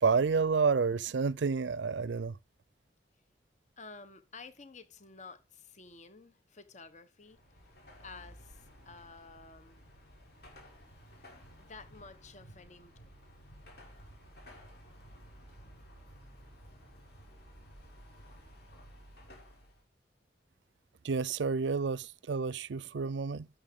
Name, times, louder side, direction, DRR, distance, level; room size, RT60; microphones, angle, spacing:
voice 1, 0.0-2.4 21.0-23.5, right 5 dB, 85° right, 0.5 m, -29 dB
voice 2, 3.8-7.7 8.0-9.8 11.6-12.9, left 4 dB, 40° left, 1.1 m, -52 dB
Car passing by / Traffic noise roadway noise / Engine, 7.2-19.8, equal, 60° left, 5.4 m, -54 dB
13.0 x 7.0 x 3.7 m
head